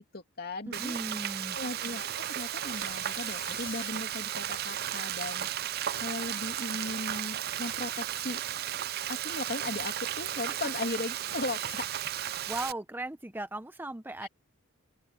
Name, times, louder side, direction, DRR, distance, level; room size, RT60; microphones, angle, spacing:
voice 1, 0.1-1.0 1.5-8.4 9.1-11.9 14.2-14.3, left 2 dB, 50° left, 2.7 m, -37 dB
voice 2, 0.7-1.6 10.5-10.6 12.2-14.3, right 1 dB, 10° right, 0.7 m, -38 dB
Frying (food), 0.7-12.7, right 11 dB, 45° right, 0.5 m, -34 dB
sound 1, 0.9-5.8, right 9 dB, 70° right, 2.8 m, -53 dB
sound 2, 2.1-3.9, left 14 dB, 75° left, 5.5 m, -48 dB
open air
head